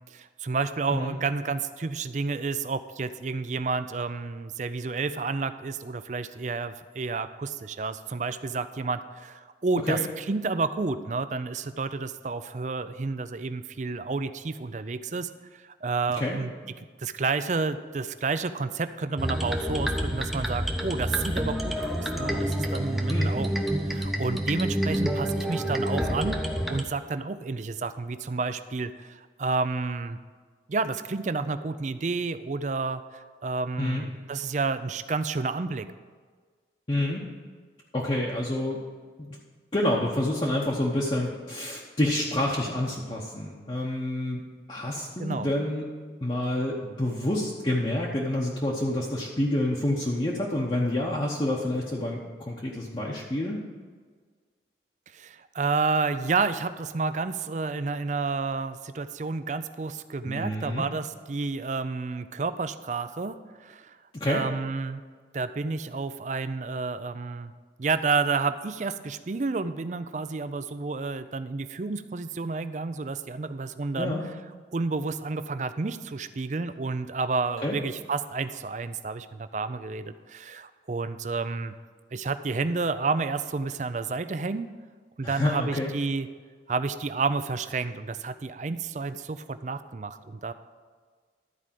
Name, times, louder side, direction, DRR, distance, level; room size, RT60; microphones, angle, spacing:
voice 1, 0.1-16.5 17.0-23.5 23.8-30.2 30.7-35.9 45.2-45.5 55.1-64.0 64.3-65.0 65.3-67.5 67.8-74.1 74.7-81.8 82.1-84.7 85.2-86.3 86.7-90.5, right 4 dB, 40° right, 12 dB, 0.4 m, -30 dB
sound 1, 19.2-26.8, equal, ahead, 0.7 m, -28 dB
voice 2, 36.9-37.2 37.9-38.8 39.2-39.4 39.7-44.4 44.7-45.8 46.2-53.6 60.3-60.9 64.1-64.4 74.0-74.2 77.6-77.7 85.2-85.9, left 1 dB, 30° left, -4 dB, 0.9 m, -28 dB
12.5 x 4.8 x 7.4 m, 1.5 s
head